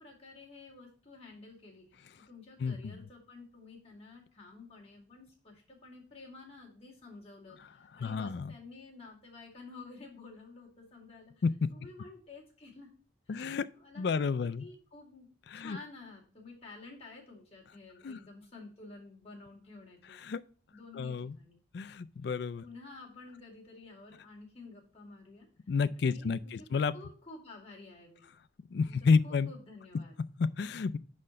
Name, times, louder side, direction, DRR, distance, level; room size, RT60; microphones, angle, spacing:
voice 1, 0.0-11.3 11.7-12.9 13.3-20.2 20.7-21.6 22.6-25.5 26.0-26.7 26.9-28.3 28.9-29.0 29.2-30.2, left 3 dB, 30° left, 2.1 m, -51 dB
voice 2, 2.6-3.0 7.9-8.5 11.4-11.7 13.3-13.7 14.0-14.7 15.5-15.8 18.0-18.2 20.1-20.4 20.9-21.3 21.7-22.6 25.7-26.9 28.7-29.5 30.4-31.0, left 5 dB, 55° left, 0.3 m, -30 dB
5.5 x 4.3 x 6.2 m
head